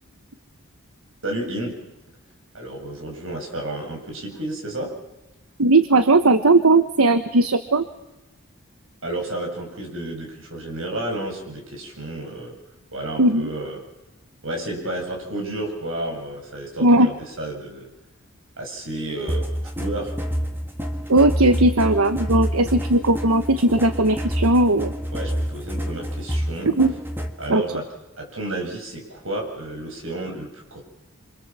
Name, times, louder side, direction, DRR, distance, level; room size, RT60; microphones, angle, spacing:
voice 1, 1.2-1.7 2.5-4.9 9.0-12.6 12.9-13.8 14.4-17.9 18.6-20.1 25.1-26.7 27.4-27.8 28.2-30.8, right 1 dB, 65° right, 1 dB, 8.0 m, -31 dB
voice 2, 5.6-7.8 13.2-13.5 16.8-17.1 21.1-24.9 26.7-26.9 27.5-27.6, right 2 dB, 85° right, 9 dB, 1.2 m, -17 dB
sound 1, 19.3-27.5, equal, 10° right, 2.0 m, -27 dB
27.5 x 24.5 x 7.5 m, 0.99 s
head